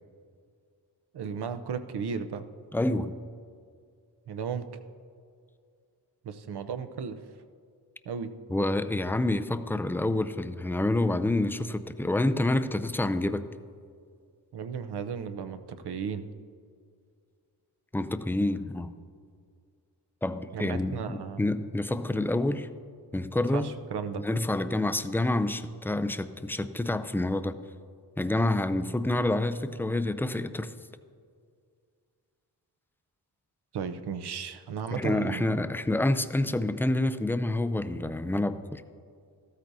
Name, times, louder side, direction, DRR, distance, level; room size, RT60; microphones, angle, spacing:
voice 1, 1.1-2.4 4.3-4.7 6.2-7.2 8.0-8.3 14.5-16.3 20.5-21.5 23.5-24.2 33.7-35.6, right 6 dB, 75° right, 10 dB, 0.7 m, -35 dB
voice 2, 2.7-3.1 8.5-13.4 17.9-18.9 20.2-22.7 23.1-23.7 24.2-27.5 28.2-30.7 34.9-38.8, left 2 dB, 5° left, 11 dB, 0.3 m, -28 dB
14.0 x 13.0 x 2.7 m, 2.2 s
wide cardioid pair, 100°, 40 cm